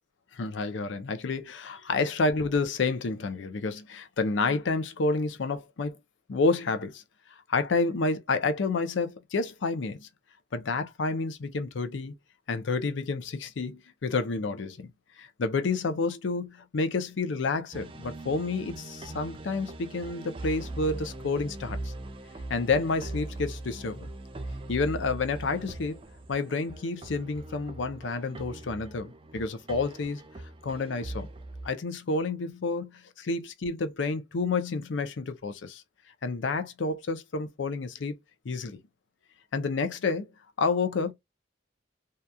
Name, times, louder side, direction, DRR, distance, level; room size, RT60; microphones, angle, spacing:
voice 1, 0.3-6.0 6.3-7.0 7.5-10.1 10.5-12.1 12.5-14.9 15.2-21.9 22.5-24.1 24.7-26.0 26.3-30.2 30.6-31.3 31.6-35.8 36.2-38.2 38.4-38.8 39.5-40.3 40.6-41.1, left 3 dB, 90° left, 0.5 m, -29 dB
sound 1, 17.7-31.7, right 2 dB, 30° right, 0.4 m, -41 dB
2.8 x 2.3 x 2.2 m
head